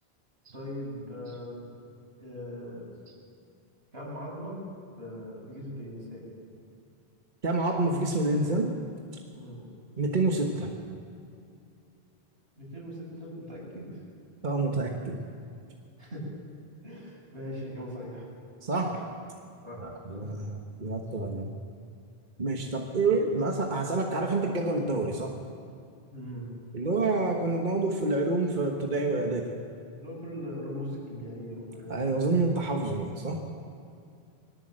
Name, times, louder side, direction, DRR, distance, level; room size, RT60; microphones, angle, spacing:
voice 1, 0.5-1.7 2.2-2.9 3.9-4.6 5.0-6.3 9.3-9.6 12.6-14.0 16.0-16.2 16.8-18.3 18.8-19.0 19.6-19.9 20.2-20.3 26.1-26.5 30.0-32.1, equal, 85° right, -4 dB, 7.7 m, -40 dB
voice 2, 7.4-8.8 10.0-10.7 14.4-15.2 18.6-19.0 19.8-21.5 22.4-25.3 26.7-29.6 31.9-33.4, right 2 dB, 50° right, 1 dB, 1.5 m, -28 dB
22.0 x 19.0 x 7.7 m, 2.5 s
omnidirectional pair, 1.0 m